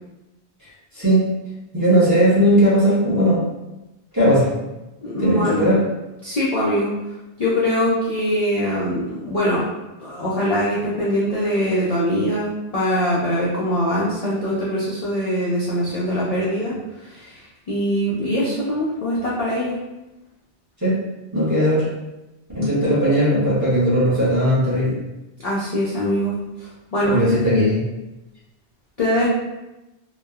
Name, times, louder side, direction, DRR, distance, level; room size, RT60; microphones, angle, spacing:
voice 1, 1.7-3.5 4.1-4.5 5.2-5.8 20.8-20.9 21.3-21.9 22.5-25.0 27.0-27.8, equal, 20° right, -10 dB, 0.8 m, -17 dB
voice 2, 5.0-5.7 6.2-6.9 7.4-9.7 10.0-19.7 25.4-27.2 29.0-29.3, equal, 50° left, -7 dB, 0.5 m, -22 dB
2.9 x 2.0 x 2.3 m, 1.0 s
omnidirectional pair, 1.1 m